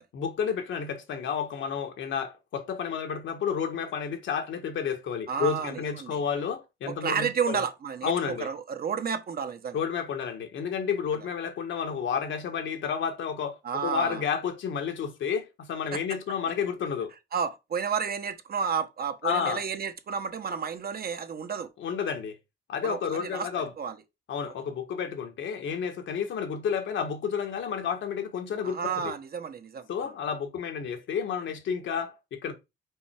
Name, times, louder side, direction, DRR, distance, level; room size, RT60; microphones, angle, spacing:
voice 1, 0.1-7.6 8.0-8.5 9.7-17.1 19.2-19.6 21.8-22.4 22.7-23.7 24.3-29.1 29.9-32.5, left 7 dB, 70° left, 1.5 m, -31 dB
voice 2, 5.3-6.2 6.9-9.8 13.6-14.2 15.9-16.0 17.3-21.7 22.8-23.5 23.8-24.0 24.4-24.5 28.6-30.1, right 6 dB, 50° right, 1.2 m, -31 dB
5.4 x 4.3 x 4.4 m
cardioid pair, 90°, 20 cm